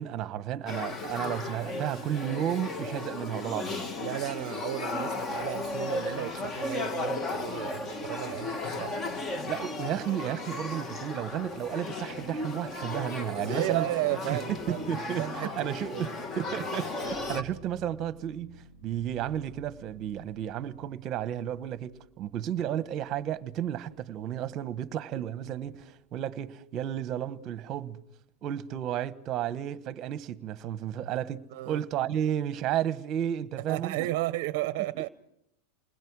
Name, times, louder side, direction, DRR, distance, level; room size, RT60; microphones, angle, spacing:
voice 1, 0.0-3.9 9.5-13.9 14.3-14.4 14.7-16.1 16.4-28.0 28.4-33.9, right 10 dB, 35° right, 1.1 m, -33 dB
Male speech man speaking / Child speech kid speaking / Conversation, 0.7-17.4, left 2 dB, 20° left, 1.5 m, -35 dB
voice 2, 4.0-9.2 13.3-16.2 16.5-16.7 17.0-17.1 31.5-31.8 33.7-35.1, right 17 dB, 55° right, 0.7 m, -34 dB
sound 1, 17.0-24.8 25.3-26.1, equal, 50° left, 7.7 m, -55 dB
29.0 x 21.0 x 4.7 m
supercardioid pair, 150°, 0 cm